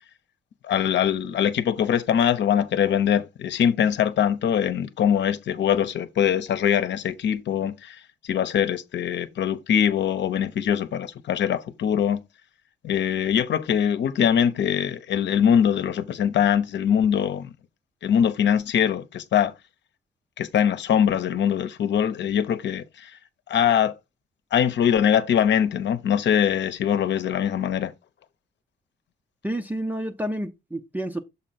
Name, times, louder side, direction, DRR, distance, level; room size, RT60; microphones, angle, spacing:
voice 1, 0.6-12.2 12.8-17.5 18.0-19.5 20.4-23.1 23.5-23.9 24.5-27.9, left 9 dB, 65° left, 0.9 m, -22 dB
voice 2, 29.4-31.2, right 1 dB, 10° right, 0.7 m, -29 dB
7.2 x 4.5 x 4.2 m
cardioid pair, 90°, 20 cm